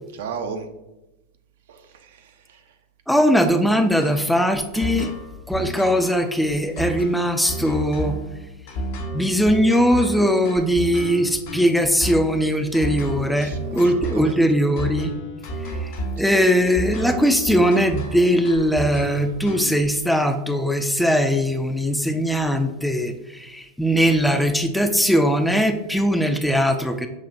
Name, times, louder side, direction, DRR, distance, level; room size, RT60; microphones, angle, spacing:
voice 1, 0.1-0.7 1.7-2.3 13.4-14.4, right 6 dB, 70° right, 6 dB, 0.5 m, -35 dB
voice 2, 3.1-5.2 5.5-8.2 9.1-15.1 15.6-27.1, equal, 5° left, 7 dB, 0.3 m, -20 dB
sound 1, 4.0-19.9, right 1 dB, 60° left, 0.7 m, -31 dB
5.7 x 2.7 x 2.5 m, 0.99 s
hypercardioid pair, 95°, 0 cm